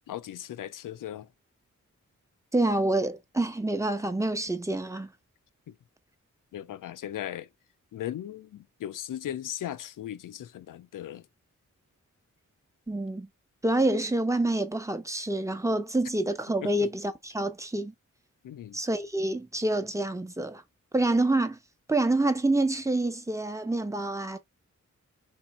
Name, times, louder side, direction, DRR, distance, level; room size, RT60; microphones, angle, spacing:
voice 1, 0.1-1.3 5.7-5.8 6.5-7.5 7.9-11.3 16.6-16.9 18.4-18.8, left 11 dB, 85° left, 0.5 m, -37 dB
voice 2, 2.5-5.1 12.9-13.3 13.6-17.9 18.7-20.6 20.9-21.6 21.9-24.4, right 2 dB, 10° right, 0.9 m, -27 dB
3.4 x 2.7 x 4.2 m
cardioid pair, 55°, 31 cm